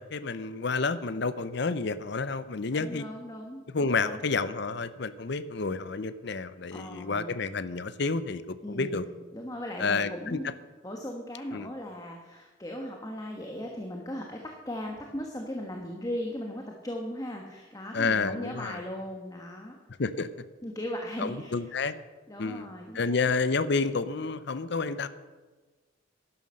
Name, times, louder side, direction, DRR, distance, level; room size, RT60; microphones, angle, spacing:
voice 1, 0.0-3.0 3.7-9.1 9.8-10.4 11.5-11.7 17.9-18.8 20.0-20.3 21.2-21.9 22.4-22.7 22.9-25.1, left 4 dB, 55° left, 14 dB, 0.6 m, -30 dB
voice 2, 2.7-4.2 6.7-7.4 8.6-10.6 10.8-14.4 14.6-19.8 20.6-21.8 22.3-23.3, left 1 dB, 15° left, 1 dB, 1.3 m, -38 dB
11.5 x 11.5 x 6.4 m, 1.3 s
head